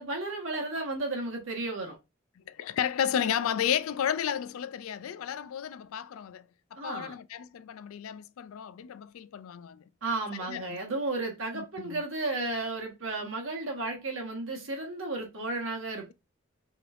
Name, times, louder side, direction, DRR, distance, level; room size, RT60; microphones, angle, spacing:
voice 1, 0.0-2.0 6.8-7.1 10.0-16.1, right 2 dB, 65° right, 1.5 m, -33 dB
voice 2, 2.4-9.8 10.3-10.8 11.5-12.0, left 9 dB, 80° left, 0.4 m, -33 dB
4.8 x 3.2 x 2.6 m
head